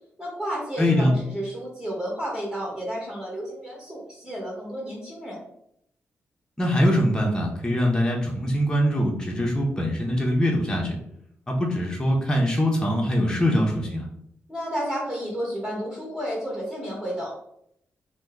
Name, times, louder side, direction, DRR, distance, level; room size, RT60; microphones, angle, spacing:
voice 1, 0.2-5.4 14.5-17.3, equal, 15° right, -4 dB, 1.2 m, -31 dB
voice 2, 0.8-1.1 6.6-11.0 11.5-14.1, equal, 15° left, -1 dB, 0.8 m, -23 dB
2.9 x 2.2 x 3.5 m, 0.72 s
cardioid pair, 80°, 5 cm